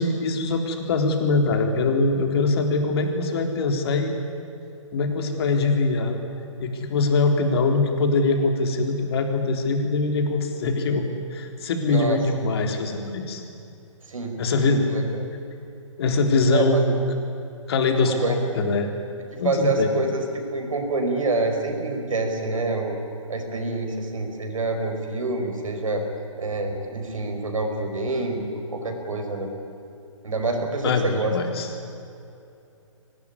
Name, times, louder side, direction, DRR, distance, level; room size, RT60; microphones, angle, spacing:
voice 1, 0.0-4.2 4.9-6.2 6.6-11.0 11.3-13.4 14.4-14.8 16.0-17.0 17.7-18.9 19.4-19.9 30.8-31.7, left 3 dB, 50° left, 4 dB, 3.6 m, -23 dB
voice 2, 11.9-12.2 14.1-15.2 16.5-16.8 18.1-18.3 19.4-20.2 20.5-23.0 23.3-26.0 26.4-29.5 30.2-31.3, right 2 dB, 85° right, 4 dB, 5.3 m, -27 dB
23.0 x 20.0 x 9.9 m, 2.7 s
hypercardioid pair, 145°, 17 cm